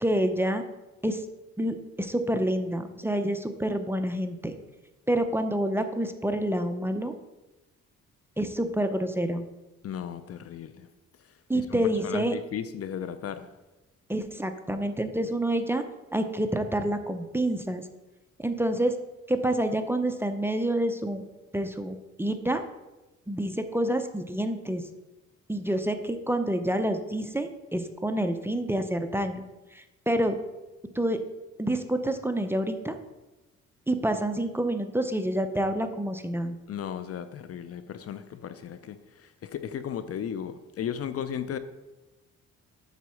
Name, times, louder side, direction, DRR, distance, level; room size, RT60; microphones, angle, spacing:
voice 1, 0.0-0.6 1.0-1.2 1.6-4.5 5.1-7.1 8.4-9.4 11.5-12.3 14.1-15.8 16.1-17.9 18.4-19.0 19.3-21.2 21.5-22.6 23.3-24.8 25.5-29.4 29.7-30.4 30.9-31.2 31.6-33.0 33.9-36.6, right 1 dB, 10° right, 0.6 m, -28 dB
voice 2, 9.8-10.9 11.5-13.5 25.8-25.9 36.7-41.6, left 9 dB, 50° left, 0.6 m, -35 dB
8.3 x 4.1 x 6.3 m
cardioid pair, 90°, 30 cm